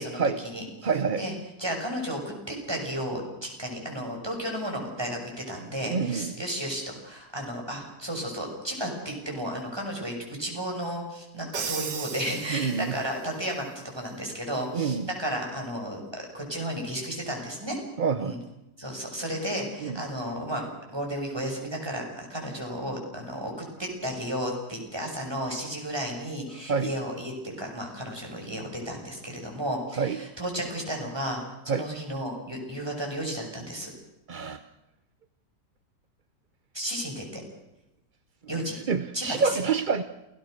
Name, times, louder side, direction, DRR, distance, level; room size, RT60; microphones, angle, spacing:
voice 1, 0.0-1.3 1.6-13.6 13.9-17.8 18.2-18.4 18.8-20.6 20.9-23.5 23.8-33.9 36.7-37.4 38.5-38.8 39.1-39.6, equal, 15° right, 0 dB, 6.5 m, -33 dB
voice 2, 0.8-1.2 5.8-6.3 12.5-12.9 14.7-15.1 18.0-18.4 19.8-20.0 26.7-26.9 30.0-30.2 31.7-31.9 34.3-34.6 38.9-40.0, right 5 dB, 40° right, 10 dB, 0.8 m, -27 dB
Crash cymbal, 11.5-13.2, right 6 dB, 90° right, 2.2 m, -35 dB
29.0 x 17.0 x 6.6 m, 0.93 s
omnidirectional pair, 1.8 m